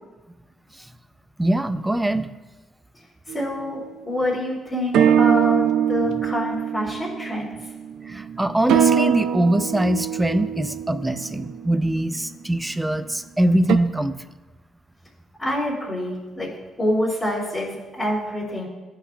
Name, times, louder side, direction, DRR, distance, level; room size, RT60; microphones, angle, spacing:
voice 1, 1.4-2.3 8.0-14.2, right 1 dB, 10° right, 11 dB, 0.4 m, -22 dB
voice 2, 3.3-3.8 4.0-7.5 15.4-16.5 16.8-18.7, left 1 dB, 25° left, -11 dB, 2.7 m, -26 dB
sound 1, 3.3-3.7 4.9-12.0 13.7-13.8, right 8 dB, 80° right, 0.4 m, -22 dB
16.0 x 5.5 x 2.5 m, 1.2 s
cardioid pair, 90°, 0 cm